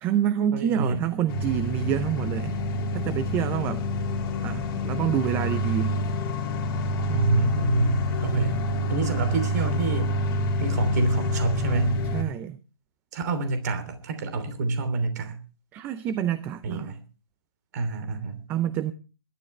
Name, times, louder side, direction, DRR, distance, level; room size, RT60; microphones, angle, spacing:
voice 1, 0.0-2.6 2.9-3.8 4.4-6.0 12.1-12.6 15.7-16.9 18.5-18.9, right 10 dB, 15° right, 0.6 m, -27 dB
voice 2, 0.5-1.1 7.0-8.5 8.9-10.1 10.6-12.0 13.1-15.4 16.6-17.0 17.7-18.4, right 3 dB, 45° right, 3.0 m, -27 dB
sound 1, 1.3-12.2, left 1 dB, 25° left, 3.5 m, -27 dB
22.0 x 12.0 x 3.2 m
hypercardioid pair, 155°, 13 cm